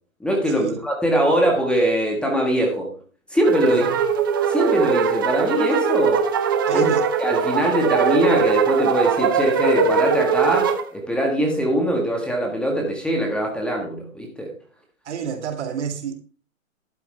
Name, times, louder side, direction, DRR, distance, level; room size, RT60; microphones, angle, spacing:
voice 1, 0.2-2.9 3.3-3.8 4.5-6.2 6.7-6.9 7.2-14.5, right 1 dB, ahead, 1.5 m, -22 dB
sound 1, 3.4-10.8, right 6 dB, 15° right, 0.5 m, -21 dB
voice 2, 3.6-4.0 6.7-7.0 15.0-16.1, right 7 dB, 55° right, 2.2 m, -29 dB
12.0 x 8.4 x 3.3 m
hypercardioid pair, 150°, 40 cm